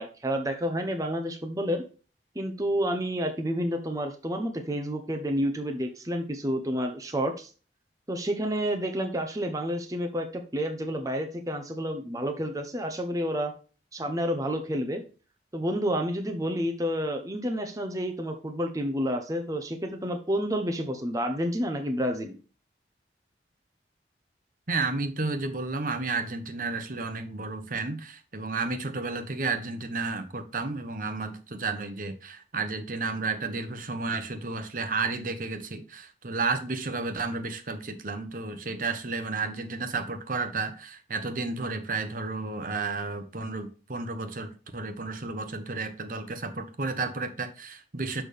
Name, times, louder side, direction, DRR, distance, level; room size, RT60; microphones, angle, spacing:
voice 1, 0.0-1.8 2.3-7.5 8.1-13.5 13.9-15.0 15.5-22.4, equal, 20° right, 0.8 m, -29 dB
voice 2, 24.7-48.2, right 3 dB, 50° right, 1.0 m, -32 dB
6.7 x 5.9 x 3.4 m
head